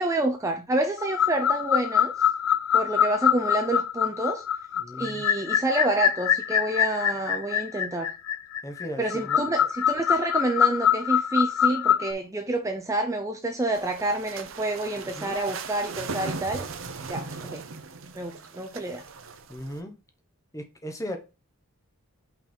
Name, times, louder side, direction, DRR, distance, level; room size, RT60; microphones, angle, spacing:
voice 1, 0.0-2.1 2.7-4.4 5.0-8.1 9.0-16.7 17.1-17.6 18.1-19.0, right 2 dB, 15° right, 0.6 m, -28 dB
sound 1, 1.0-12.1, left 9 dB, 75° left, 0.4 m, -24 dB
voice 2, 4.7-5.3 8.6-9.7 15.1-15.4 19.5-20.0 20.5-21.2, equal, 15° left, 1.0 m, -37 dB
sound 2, 13.7-19.8, right 4 dB, 65° right, 0.7 m, -38 dB
5.6 x 4.0 x 4.4 m
head